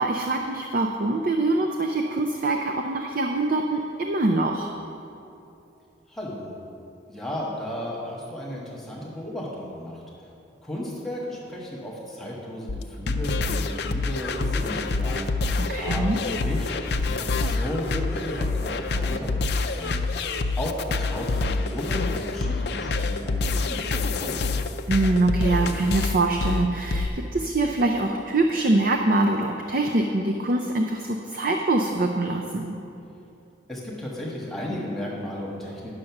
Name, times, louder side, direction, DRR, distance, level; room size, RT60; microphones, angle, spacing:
voice 1, 0.0-4.7 15.7-16.2 24.9-32.8, right 2 dB, 45° right, 3 dB, 0.5 m, -24 dB
voice 2, 6.1-6.6 7.1-10.0 10.6-15.3 15.7-20.0 20.6-24.4 33.7-35.9, left 1 dB, ahead, -5 dB, 1.3 m, -34 dB
sound 1, 12.7-27.1, left 3 dB, 55° left, 0.4 m, -26 dB
10.0 x 6.4 x 5.9 m, 2.8 s
head